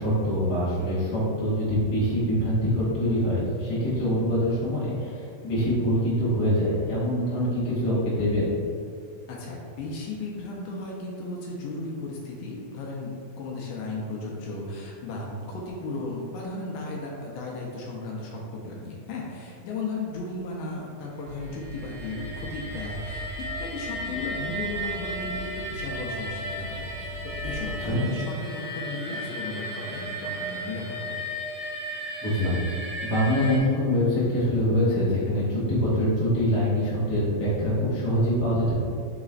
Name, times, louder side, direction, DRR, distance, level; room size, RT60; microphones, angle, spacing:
voice 1, 0.0-8.5 27.8-28.0 32.2-38.7, equal, 65° left, -10 dB, 0.9 m, -24 dB
voice 2, 9.3-23.3 23.6-31.2, left 2 dB, 80° left, -2 dB, 2.1 m, -35 dB
sound 1, 21.2-27.9, equal, 75° right, 2.2 m, -40 dB
sound 2, 21.4-33.6, equal, 45° left, 1.4 m, -35 dB
4.9 x 4.0 x 2.4 m, 2.4 s
omnidirectional pair, 4.1 m